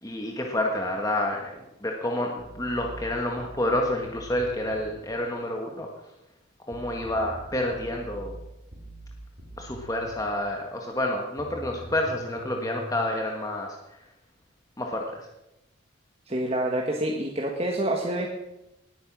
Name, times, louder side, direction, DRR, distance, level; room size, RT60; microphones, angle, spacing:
voice 1, 0.0-5.9 6.7-8.3 9.6-13.7 14.8-15.3, left 1 dB, 15° left, 1 dB, 1.6 m, -29 dB
sound 1, 2.4-5.0 6.7-10.3 11.4-13.0, right 1 dB, 50° right, 3.2 m, -43 dB
voice 2, 16.3-18.3, right 1 dB, 30° right, 0 dB, 1.7 m, -27 dB
19.5 x 9.2 x 6.2 m, 0.92 s
head